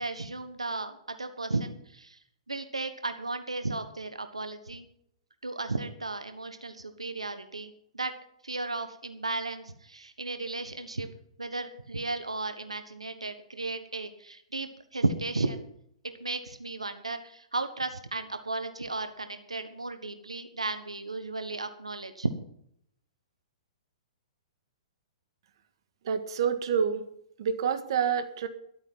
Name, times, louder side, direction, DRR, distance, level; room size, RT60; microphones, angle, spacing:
voice 1, 0.0-2.2 2.5-4.8 5.4-8.1 8.4-11.1 11.4-15.6 16.2-22.3, right 3 dB, 90° right, 9 dB, 1.4 m, -34 dB
voice 2, 26.0-27.0 27.4-28.5, right 7 dB, 60° right, 10 dB, 1.7 m, -27 dB
13.5 x 12.0 x 5.6 m, 0.69 s
figure-of-eight pair, 115°, 3 cm